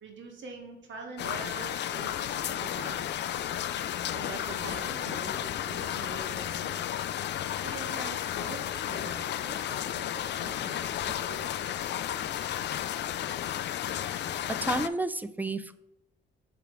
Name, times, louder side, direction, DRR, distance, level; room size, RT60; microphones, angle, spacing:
voice 1, 0.0-3.4 4.1-7.0 7.6-12.0, right 4 dB, 70° right, 2 dB, 1.7 m, -44 dB
sound 1, 1.2-14.9, left 11 dB, 60° left, 0.4 m, -33 dB
voice 2, 14.6-15.7, right 2 dB, 10° right, 13 dB, 0.4 m, -31 dB
7.2 x 3.5 x 4.5 m, 0.88 s
cardioid pair, 90°, 20 cm